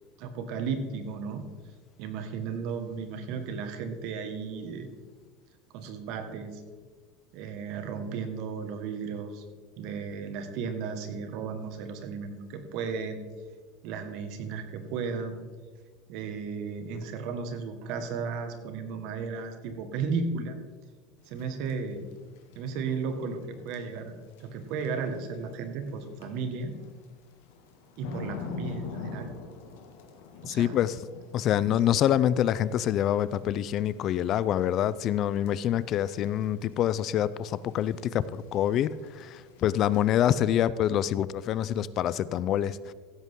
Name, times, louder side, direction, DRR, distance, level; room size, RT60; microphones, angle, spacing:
voice 1, 0.2-1.4 2.0-4.9 5.7-6.6 7.3-9.4 9.8-13.2 13.8-15.4 16.1-20.6 21.3-22.1 22.5-26.7 28.0-29.3 30.4-30.8, right 5 dB, 60° right, 7 dB, 1.6 m, -34 dB
sound 1, 21.2-40.6, left 5 dB, 80° left, 1.9 m, -47 dB
voice 2, 30.4-31.0 31.3-42.9, left 11 dB, 45° left, 17 dB, 0.4 m, -26 dB
15.5 x 8.3 x 3.7 m, 1.4 s
supercardioid pair, 125°, 0 cm